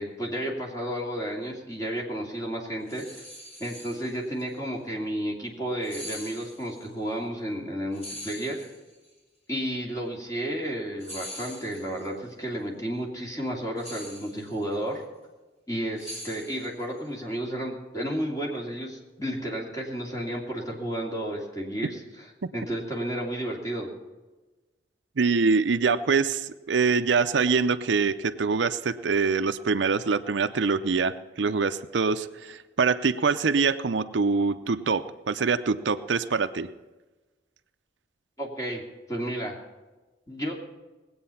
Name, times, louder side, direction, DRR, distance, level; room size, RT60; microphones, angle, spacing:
voice 1, 0.0-3.0 3.6-8.6 9.5-15.0 15.7-23.9 38.4-38.8 39.1-39.6 40.3-40.5, right 1 dB, 20° left, -1 dB, 2.7 m, -32 dB
sound 1, 2.9-4.4 5.8-6.9 7.9-9.1 11.0-12.1 13.8-14.7 16.0-17.0, equal, 35° left, 4.6 m, -42 dB
voice 2, 25.2-36.7, right 5 dB, 85° right, 11 dB, 0.6 m, -24 dB
19.5 x 8.6 x 5.7 m, 1.2 s
head